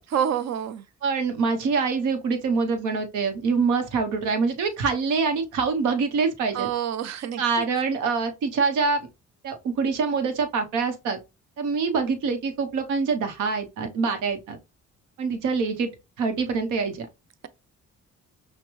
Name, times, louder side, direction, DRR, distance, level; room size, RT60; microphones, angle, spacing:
voice 1, 0.1-0.8 6.5-7.7, right 9 dB, 60° right, 0.7 m, -27 dB
voice 2, 1.0-6.7 7.4-9.1 9.4-11.2 11.6-14.6 15.2-15.9 16.2-17.1, right 4 dB, 90° right, 1.0 m, -25 dB
5.8 x 2.2 x 3.1 m
cardioid pair, 90°, 30 cm